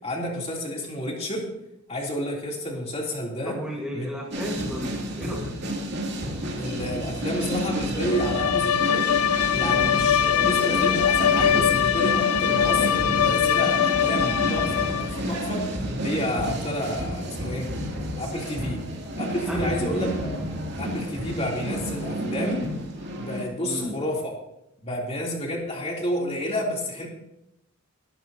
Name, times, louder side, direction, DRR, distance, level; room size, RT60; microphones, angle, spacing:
voice 1, 0.0-1.5 1.9-3.6 3.9-4.1 6.6-9.1 9.5-17.7 18.2-18.8 19.2-20.3 20.8-22.7 23.1-24.3 24.8-27.1, left 1 dB, 30° left, -2 dB, 3.0 m, -30 dB
voice 2, 3.4-5.6 9.7-9.9 19.5-20.1 23.6-24.0, equal, 5° right, -4 dB, 1.5 m, -33 dB
sound 1, 4.3-23.4, right 1 dB, 50° right, 2.5 m, -30 dB
Bowed string instrument, 8.1-15.2, left 9 dB, 75° left, 0.5 m, -22 dB
20.5 x 12.0 x 2.8 m, 0.84 s
head